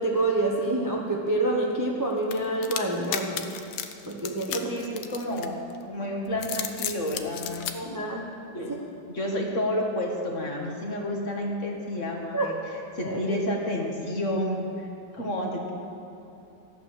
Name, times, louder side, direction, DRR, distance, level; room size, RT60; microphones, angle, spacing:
voice 1, 0.0-3.4 4.1-4.7 7.7-8.3 12.3-12.6 13.0-13.4, right 2 dB, 15° right, -1 dB, 0.9 m, -27 dB
sound 1, 2.3-5.8 6.3-7.7, left 10 dB, 75° left, 1.4 m, -33 dB
voice 2, 4.5-5.6 5.9-8.0 8.5-8.8 9.1-12.5 12.9-14.9 15.1-15.7, left 1 dB, 40° left, -1 dB, 1.9 m, -30 dB
14.0 x 9.1 x 6.6 m, 3.0 s
omnidirectional pair, 2.1 m